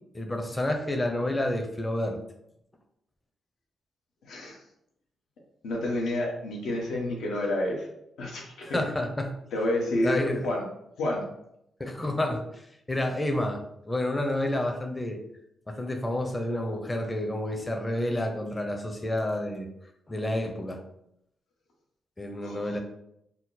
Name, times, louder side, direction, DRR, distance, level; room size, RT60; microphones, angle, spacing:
voice 1, 0.1-2.2 8.6-9.4 10.0-10.5 11.8-15.2 15.7-19.7 20.1-20.8 22.2-22.8, left 1 dB, 15° left, 3 dB, 0.6 m, -29 dB
voice 2, 4.2-4.6 5.6-7.9 8.2-8.8 9.5-10.6 11.0-11.2 22.4-22.8, left 1 dB, 85° left, -2 dB, 1.1 m, -29 dB
4.3 x 2.1 x 4.0 m, 0.78 s
wide cardioid pair, 140°, 0 cm